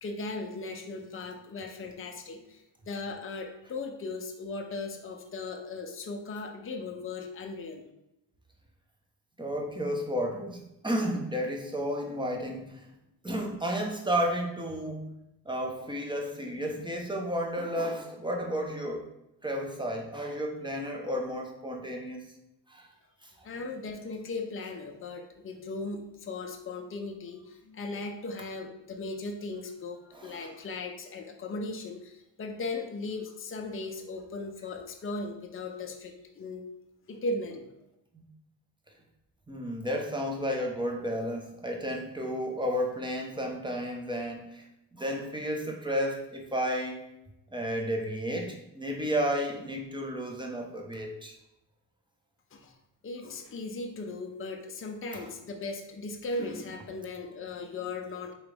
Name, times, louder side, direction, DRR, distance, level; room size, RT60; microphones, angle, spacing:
voice 1, 0.0-7.9 23.4-36.6 37.1-37.7 52.5-52.8 53.0-58.3, left 3 dB, 30° left, 3 dB, 0.6 m, -37 dB
voice 2, 9.4-12.8 13.2-15.1 15.4-19.1 19.4-22.2 22.7-22.9 23.2-23.3 30.1-30.5 38.1-38.2 39.5-44.7 44.9-47.0 47.5-51.4 55.1-55.3 56.4-56.6, equal, 10° right, 1 dB, 0.8 m, -32 dB
3.9 x 3.0 x 3.3 m, 0.86 s
cardioid pair, 70°, 44 cm